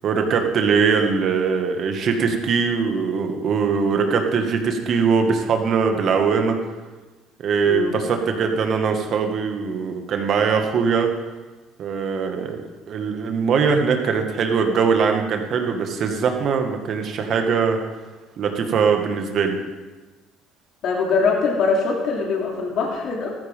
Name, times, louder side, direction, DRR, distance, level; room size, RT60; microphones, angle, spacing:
voice 1, 0.0-6.6 7.4-11.1 11.8-12.6 12.9-17.8 18.4-19.6, right 5 dB, 55° right, 4 dB, 1.8 m, -21 dB
voice 2, 20.8-23.3, left 4 dB, 60° left, -1 dB, 2.7 m, -22 dB
14.0 x 13.0 x 3.7 m, 1.2 s
supercardioid pair, 80°, 0 cm